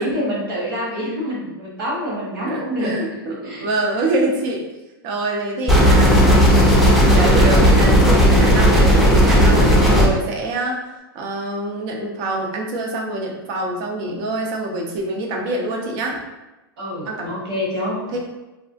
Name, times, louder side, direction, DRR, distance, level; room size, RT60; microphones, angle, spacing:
voice 1, 0.0-3.0 3.4-3.6 16.8-18.0, equal, 75° right, -5 dB, 1.2 m, -26 dB
voice 2, 2.4-4.6 5.0-6.3 7.1-16.2 17.1-17.3 18.1-18.2, right 2 dB, 50° right, 0 dB, 0.6 m, -25 dB
sound 1, 5.7-10.1, equal, ahead, 0.4 m, -13 dB
2.5 x 2.0 x 2.5 m, 1.0 s
hypercardioid pair, 120°, 12 cm